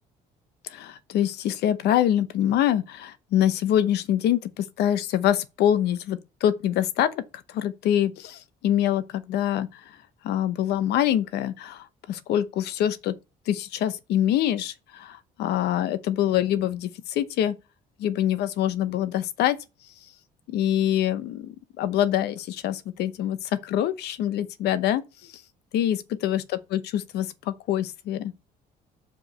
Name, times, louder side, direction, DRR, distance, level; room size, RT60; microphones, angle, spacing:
voice 1, 0.6-7.2 7.5-10.0 10.2-13.2 13.5-17.6 18.0-19.6 20.5-25.4 25.7-28.3, left 11 dB, 75° left, 0.9 m, -25 dB
5.0 x 4.8 x 6.3 m
cardioid pair, 110°, 17 cm